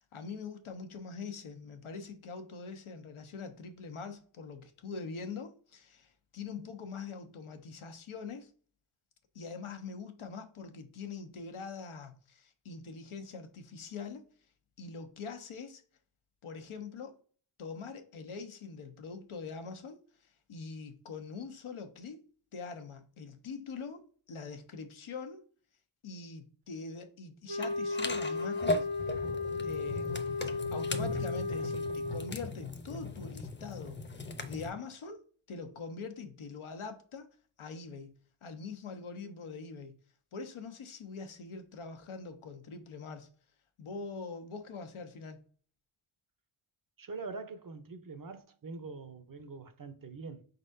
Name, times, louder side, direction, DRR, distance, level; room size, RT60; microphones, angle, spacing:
voice 1, 0.1-8.5 9.3-14.2 14.8-15.8 16.4-17.2 17.6-22.2 22.5-25.4 26.0-28.9 29.6-30.4 30.7-34.0 34.4-35.2 35.5-37.3 37.6-38.1 38.4-39.9 40.3-43.3 43.8-45.4, left 4 dB, 80° left, 1.0 m, -43 dB
sound 1, 27.5-32.4, left 3 dB, 75° right, 0.9 m, -35 dB
sound 2, 27.6-34.7, left 2 dB, 25° left, 0.7 m, -38 dB
voice 2, 47.0-50.5, right 4 dB, 45° right, 0.7 m, -44 dB
4.6 x 4.0 x 2.6 m
cardioid pair, 60°, 48 cm